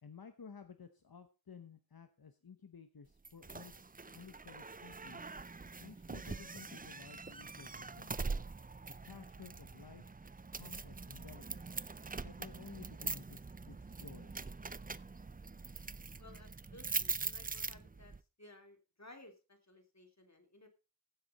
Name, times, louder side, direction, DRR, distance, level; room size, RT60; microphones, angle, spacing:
voice 1, 0.0-5.3 5.8-8.1 8.9-10.1 10.5-11.4 12.2-14.3, left 6 dB, 80° left, 8 dB, 0.9 m, -55 dB
sound 1, 3.2-18.2, right 4 dB, 25° right, 0.5 m, -43 dB
voice 2, 16.2-18.1 18.4-20.7, left 1 dB, 50° left, 5 dB, 2.6 m, -58 dB
15.5 x 7.5 x 4.1 m, 0.32 s
wide cardioid pair, 45°, 36 cm